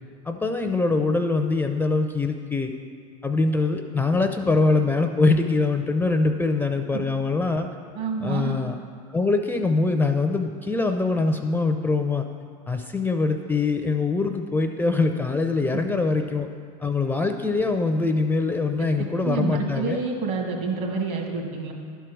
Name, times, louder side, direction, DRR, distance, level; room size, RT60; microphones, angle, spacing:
voice 1, 0.3-2.7 3.2-7.7 8.2-8.7 9.1-12.3 12.7-16.5 16.8-20.0, left 3 dB, 10° left, 5 dB, 0.4 m, -23 dB
voice 2, 8.0-8.5 18.8-21.7, right 4 dB, 60° right, 1 dB, 1.9 m, -28 dB
11.0 x 4.6 x 6.2 m, 2.2 s
supercardioid pair, 105°, 19 cm